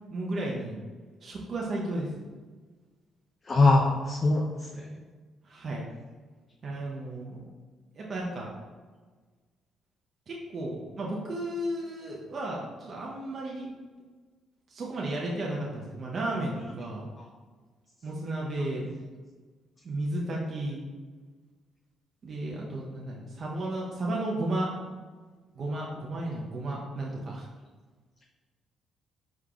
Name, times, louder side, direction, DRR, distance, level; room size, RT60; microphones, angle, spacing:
voice 1, 0.1-0.8 1.2-2.1 5.4-5.8 6.6-7.4 7.9-8.5 10.3-13.7 14.7-17.1 18.0-18.9 19.8-20.8 22.2-24.7 25.6-27.5, right 1 dB, 50° right, -3 dB, 0.7 m, -33 dB
voice 2, 3.4-4.9 17.2-17.3, left 2 dB, 40° left, -1 dB, 0.5 m, -23 dB
4.7 x 3.6 x 2.3 m, 1.4 s
supercardioid pair, 60°, 0 cm